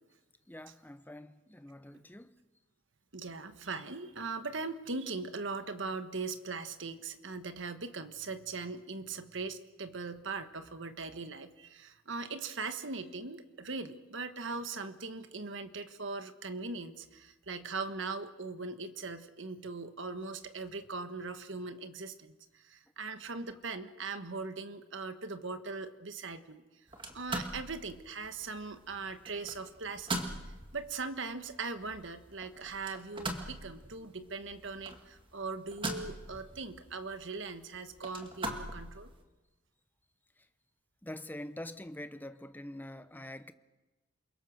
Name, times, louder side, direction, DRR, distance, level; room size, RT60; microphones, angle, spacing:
voice 1, 0.5-2.4 40.4-40.5 41.0-43.5, left 1 dB, 10° left, 0.8 m, -45 dB
voice 2, 3.1-26.6 27.1-39.1, right 4 dB, 65° right, 1.4 m, -40 dB
sound 1, 26.9-39.2, right 2 dB, 25° right, 2.1 m, -43 dB
28.5 x 22.5 x 6.5 m
head